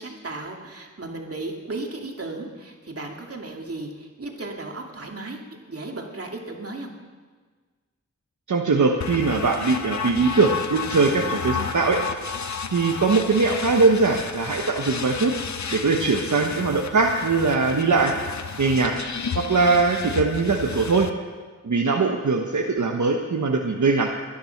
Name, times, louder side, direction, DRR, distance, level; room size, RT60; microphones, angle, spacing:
voice 1, 0.0-6.9, right 2 dB, 50° right, 1 dB, 2.5 m, -35 dB
voice 2, 8.5-12.0 12.7-15.3 15.7-18.1 18.6-18.9 19.3-21.1 21.6-24.1, right 4 dB, 70° right, 1 dB, 1.2 m, -21 dB
sound 1, 9.0-21.1, left 6 dB, 65° left, 0.8 m, -32 dB
22.5 x 10.5 x 5.9 m, 1.4 s
wide cardioid pair, 90°, 30 cm